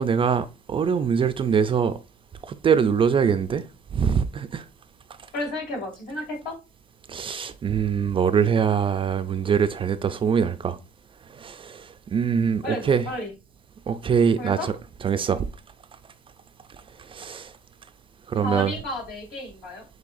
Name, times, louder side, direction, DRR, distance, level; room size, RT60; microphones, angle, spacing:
voice 1, 0.0-2.0 2.5-3.6 3.9-4.6 7.1-10.8 11.4-13.0 13.9-14.8 15.0-15.4 17.1-17.5 18.3-18.7, right 7 dB, 30° right, 0.4 m, -23 dB
voice 2, 5.3-6.6 12.6-13.3 14.4-14.7 18.4-19.8, left 1 dB, 70° left, 2.4 m, -32 dB
6.5 x 3.2 x 2.5 m
cardioid pair, 110°, 17 cm